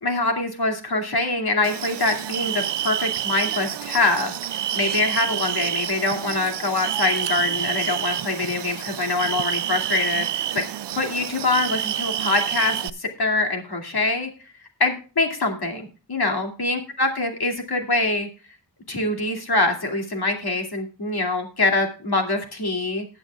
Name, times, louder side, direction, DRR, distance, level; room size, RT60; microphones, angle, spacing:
voice 1, 0.0-4.4 4.7-10.6 10.9-14.3 14.8-18.3 18.9-23.1, left 2 dB, 60° left, 3 dB, 2.5 m, -24 dB
sound 1, 1.6-12.9, right 11 dB, 70° right, 0.5 m, -28 dB
20.0 x 7.7 x 2.3 m, 0.35 s
wide cardioid pair, 95°, 43 cm